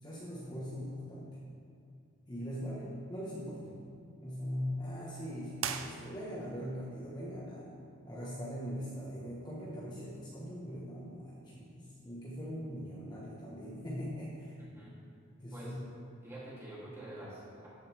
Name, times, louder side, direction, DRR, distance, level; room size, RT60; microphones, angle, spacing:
voice 1, 0.0-1.3 2.3-3.7 4.2-7.7 8.1-14.5 15.4-15.8, equal, 20° left, -8 dB, 1.4 m, -41 dB
sound 1, 5.6-6.6, right 7 dB, 65° right, 0.6 m, -39 dB
voice 2, 14.6-14.9 15.5-15.8 16.2-17.7, right 1 dB, 10° right, -9 dB, 3.1 m, -47 dB
14.0 x 9.3 x 3.6 m, 2.4 s
head